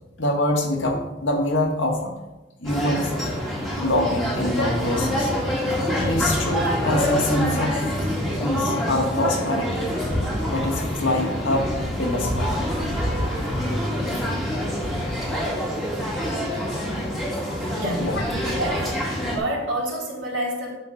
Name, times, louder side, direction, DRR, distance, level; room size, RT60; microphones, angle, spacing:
voice 1, 0.2-2.1 2.6-3.2 3.7-5.3 6.0-8.1 8.4-9.8 10.5-12.6 15.9-16.1 18.0-18.2, left 1 dB, 80° left, 1 dB, 1.8 m, -25 dB
sound 1, 2.6-19.4, equal, ahead, 2.0 m, -26 dB
voice 2, 17.7-18.1 18.6-18.9 19.3-20.7, right 1 dB, 75° right, -3 dB, 3.1 m, -27 dB
10.5 x 3.8 x 6.5 m, 1.1 s
head